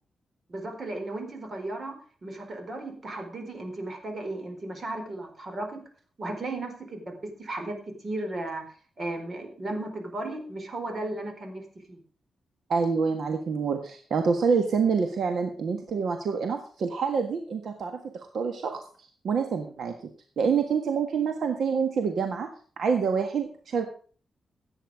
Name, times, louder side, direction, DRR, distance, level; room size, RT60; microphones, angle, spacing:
voice 1, 0.5-5.8 6.2-8.6 9.0-12.0, right 2 dB, 45° right, 5 dB, 4.4 m, -35 dB
voice 2, 12.7-18.8 19.2-19.9 20.4-22.5 22.8-23.8, right 5 dB, 75° right, 5 dB, 1.6 m, -27 dB
15.5 x 9.1 x 4.9 m, 0.43 s
cardioid pair, 80°, 0 cm